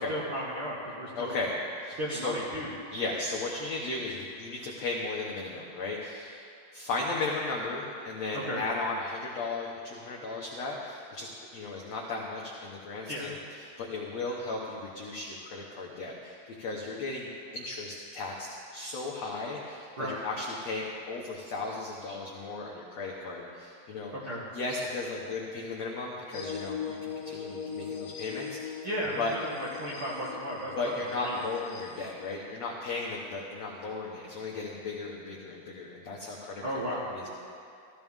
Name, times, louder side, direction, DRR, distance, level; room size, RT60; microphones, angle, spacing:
voice 1, 0.0-1.3 2.0-2.7 8.3-8.6 13.1-13.4 20.0-20.2 24.1-24.4 28.8-30.9 31.2-31.4 36.6-37.1, equal, 60° right, -7 dB, 1.4 m, -34 dB
voice 2, 1.2-2.4 2.9-6.5 6.7-24.1 24.5-28.8 29.2-29.3 30.8-37.3, left 3 dB, 80° left, -3 dB, 1.5 m, -36 dB
sound 1, 26.3-32.3, left 6 dB, 60° left, 2.0 m, -40 dB
15.5 x 14.5 x 3.6 m, 2.5 s
omnidirectional pair, 4.7 m